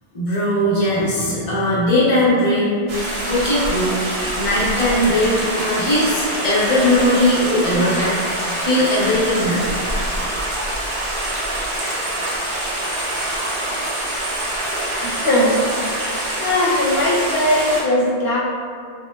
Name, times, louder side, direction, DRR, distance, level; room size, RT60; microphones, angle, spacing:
voice 1, 0.1-2.8 3.3-4.0 4.4-9.7, left 1 dB, 40° left, -8 dB, 0.6 m, -19 dB
Stream, 2.9-17.8, right 1 dB, 50° right, 0.3 m, -25 dB
voice 2, 15.0-15.5 15.9-18.4, left 1 dB, 75° left, -6 dB, 0.8 m, -19 dB
2.1 x 2.0 x 3.0 m, 2.2 s
omnidirectional pair, 1.1 m